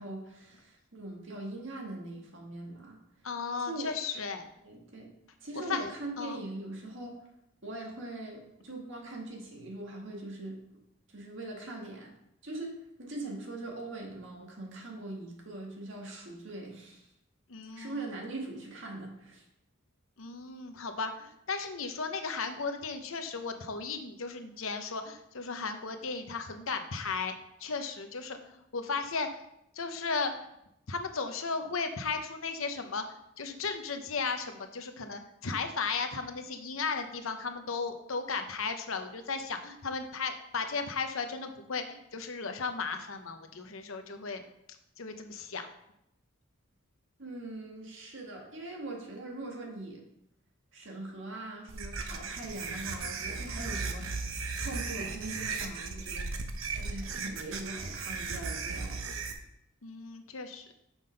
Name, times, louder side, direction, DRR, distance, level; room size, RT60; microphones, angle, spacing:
voice 1, 0.0-3.0 3.7-3.9 4.6-5.1 5.4-7.1 7.6-10.6 11.1-12.1 12.4-17.1 17.7-19.4 47.2-50.0 50.7-56.3 56.7-59.0, right 2 dB, 65° right, 0 dB, 1.9 m, -41 dB
voice 2, 3.2-4.5 5.6-6.4 17.5-18.1 20.2-27.3 27.6-29.3 29.7-30.4 30.9-33.0 33.4-44.4 45.0-45.7 59.8-60.7, left 4 dB, 80° left, 7 dB, 0.8 m, -35 dB
sound 1, 51.7-59.3, right 4 dB, 80° right, 0.9 m, -36 dB
6.2 x 5.6 x 5.2 m, 0.80 s
head